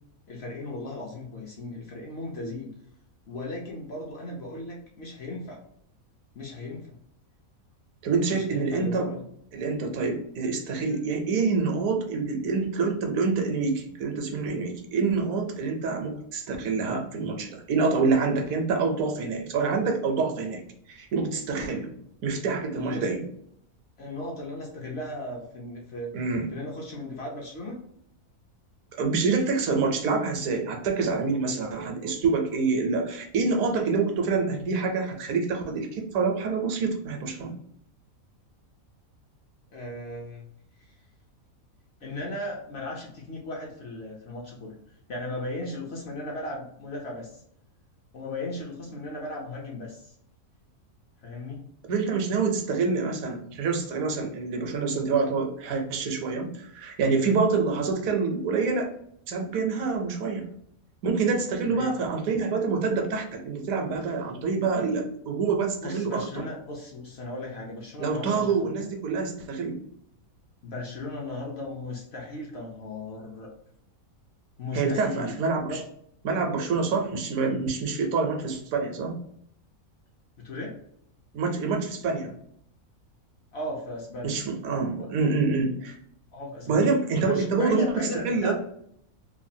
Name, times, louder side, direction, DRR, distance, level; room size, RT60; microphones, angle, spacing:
voice 1, 0.3-2.7 3.3-5.6 6.3-7.0 8.3-9.2 22.7-23.1 24.0-26.2 26.5-27.8 39.7-40.5 42.0-44.8 45.1-47.4 48.1-50.1 51.2-51.7 61.7-61.9 65.8-68.9 70.6-73.5 74.6-75.4 75.7-75.8 80.4-80.8 83.5-84.4 85.0-85.1 86.3-86.8 87.2-88.5, left 2 dB, 60° left, -2 dB, 0.7 m, -36 dB
voice 2, 8.0-9.1 9.5-20.6 20.9-21.9 22.2-23.2 26.1-26.5 29.0-37.6 51.9-58.9 59.3-60.5 61.0-66.2 68.0-69.8 74.7-75.8 76.2-79.1 81.3-82.3 84.2-86.0 86.7-88.5, right 4 dB, 75° right, 3 dB, 1.0 m, -26 dB
3.0 x 2.2 x 2.6 m, 0.69 s
omnidirectional pair, 1.5 m